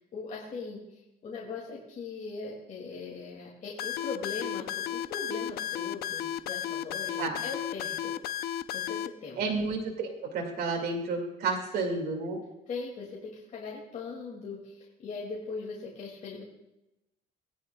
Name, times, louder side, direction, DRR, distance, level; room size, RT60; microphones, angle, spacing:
voice 1, 0.0-8.1 8.7-9.6 12.7-16.4, left 4 dB, 50° left, -3 dB, 2.3 m, -40 dB
sound 1, 3.8-9.1, left 10 dB, 65° left, 0.6 m, -33 dB
voice 2, 9.4-12.4, right 4 dB, 70° right, 1 dB, 2.2 m, -31 dB
18.5 x 10.5 x 2.3 m, 0.92 s
cardioid pair, 110°, 17 cm